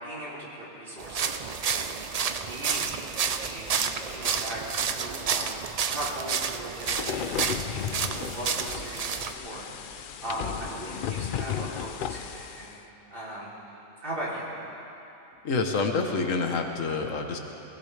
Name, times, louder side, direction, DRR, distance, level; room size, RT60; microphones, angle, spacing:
voice 1, 0.0-5.6 5.9-12.8 13.1-13.5 14.0-14.5, right 1 dB, 45° right, -7 dB, 3.4 m, -39 dB
sound 1, 1.0-9.3, right 6 dB, 65° right, 0.3 m, -30 dB
sound 2, 6.8-12.7, left 8 dB, 60° left, 0.5 m, -34 dB
voice 2, 15.4-17.4, left 4 dB, 85° left, 4 dB, 1.4 m, -27 dB
19.5 x 17.0 x 3.3 m, 3.0 s
omnidirectional pair, 1.3 m